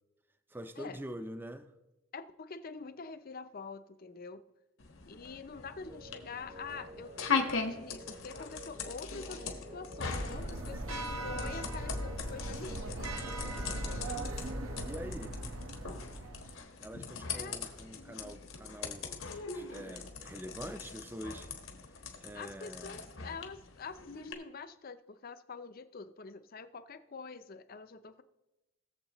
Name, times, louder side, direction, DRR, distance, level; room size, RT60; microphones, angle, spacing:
voice 1, 0.5-1.7 14.8-15.4 16.8-21.5 22.2-23.0, right 1 dB, 10° right, 9 dB, 0.4 m, -45 dB
voice 2, 2.1-4.4 5.0-13.0 13.8-14.1 17.3-17.6 22.3-28.2, left 4 dB, 45° left, 11 dB, 0.5 m, -46 dB
sound 1, 4.8-24.3, left 5 dB, 80° left, 1.3 m, -41 dB
sound 2, 5.9-15.0, equal, 30° right, 0.9 m, -51 dB
sound 3, 10.0-16.6, right 1 dB, 85° right, 1.2 m, -39 dB
19.5 x 7.3 x 3.0 m, 1.0 s
head